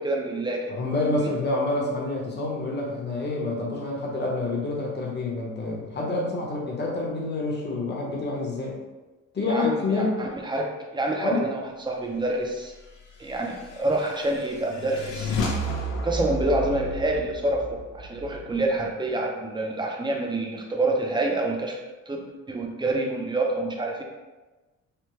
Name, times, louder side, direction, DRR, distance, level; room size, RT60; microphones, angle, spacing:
voice 1, 0.0-0.7 1.2-1.3 9.5-12.7 13.2-15.4 16.0-21.8 22.1-22.2 22.5-24.0, right 2 dB, 15° right, 1 dB, 0.6 m, -27 dB
voice 2, 0.7-8.8 9.3-10.2 11.2-11.4, left 2 dB, 35° left, -3 dB, 0.9 m, -27 dB
sound 1, 13.3-18.9, equal, 80° left, 0.6 m, -32 dB
3.4 x 2.2 x 3.1 m, 1.2 s
cardioid pair, 90°, 30 cm